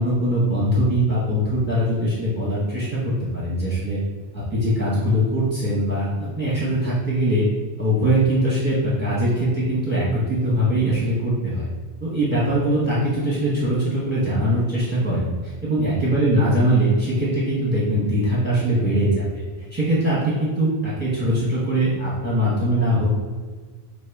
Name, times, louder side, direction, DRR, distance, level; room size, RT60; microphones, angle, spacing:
voice 1, 0.0-4.0 4.3-7.5 7.8-11.7 12.0-19.2 19.6-23.2, equal, 10° right, -8 dB, 0.8 m, -21 dB
5.1 x 2.5 x 3.4 m, 1.5 s
omnidirectional pair, 1.1 m